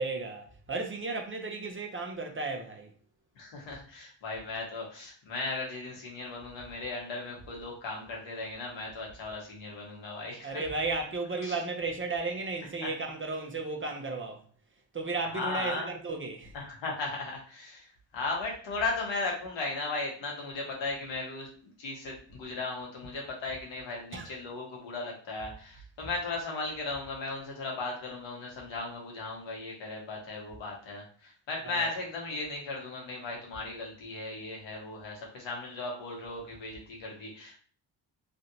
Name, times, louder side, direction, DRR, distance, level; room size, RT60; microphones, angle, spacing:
voice 1, 0.0-2.9 10.4-14.4 14.9-16.5 24.1-24.3 31.6-31.9, right 3 dB, 25° right, 0.7 m, -34 dB
voice 2, 3.3-10.6 11.4-11.6 12.8-12.9 15.3-15.9 16.5-37.6, left 3 dB, 80° left, 1.4 m, -36 dB
3.2 x 2.6 x 2.8 m
cardioid pair, 70°, 45 cm